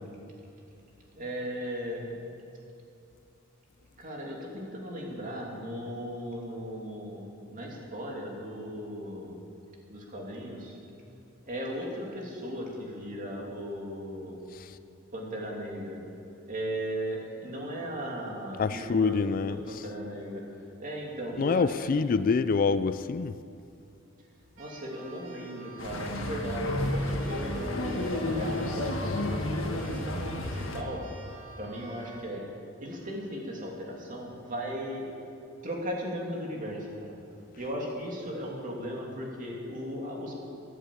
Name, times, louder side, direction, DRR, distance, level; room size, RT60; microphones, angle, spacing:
voice 1, 1.1-2.1 4.0-9.4 9.9-10.7 11.4-14.3 15.1-16.0 16.5-20.4 20.8-22.1 24.6-31.0 31.6-32.4 32.8-35.2 35.6-37.1 37.6-40.3, equal, 40° right, -2 dB, 2.9 m, -37 dB
voice 2, 18.6-19.6 21.4-23.4, left 4 dB, 40° left, 13 dB, 0.4 m, -26 dB
Keyboard (musical), 24.5-32.3, right 3 dB, 70° right, 3.4 m, -50 dB
sound 1, 25.8-30.8, left 1 dB, 70° left, 1.5 m, -31 dB
13.5 x 11.0 x 8.5 m, 2.6 s
head